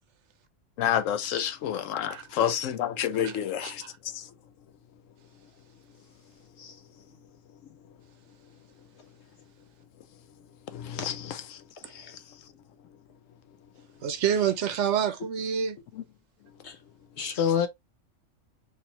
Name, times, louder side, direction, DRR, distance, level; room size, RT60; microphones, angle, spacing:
voice 1, 0.8-3.8 10.7-11.1, left 10 dB, 85° left, 1.0 m, -28 dB
voice 2, 3.2-3.9 14.0-15.8, right 8 dB, 70° right, 0.9 m, -28 dB
voice 3, 11.8-12.2 16.6-16.7 17.2-17.7, left 8 dB, 60° left, 1.2 m, -28 dB
4.4 x 2.7 x 3.0 m
omnidirectional pair, 1.3 m